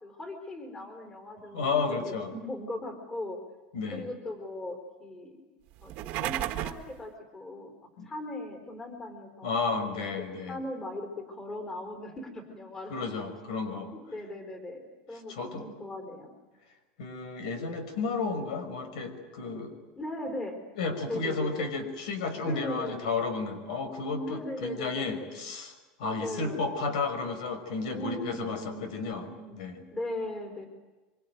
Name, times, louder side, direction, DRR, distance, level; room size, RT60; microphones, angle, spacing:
voice 1, 0.0-3.4 3.9-5.4 5.8-9.6 10.2-12.9 14.1-16.3 20.0-20.6 21.1-21.7 22.4-23.0 24.2-25.3 26.0-26.9 27.9-29.6 29.9-30.7, left 1 dB, 15° left, 6 dB, 4.0 m, -39 dB
voice 2, 1.5-2.3 3.7-4.1 8.0-8.1 9.4-10.6 12.9-13.9 15.3-15.7 17.0-19.7 20.8-29.3 29.5-29.8, left 4 dB, 85° left, 10 dB, 5.7 m, -32 dB
sound 1, 5.8-6.9, right 14 dB, 45° right, 1.6 m, -33 dB
25.0 x 25.0 x 9.3 m, 1.2 s
supercardioid pair, 165°, 4 cm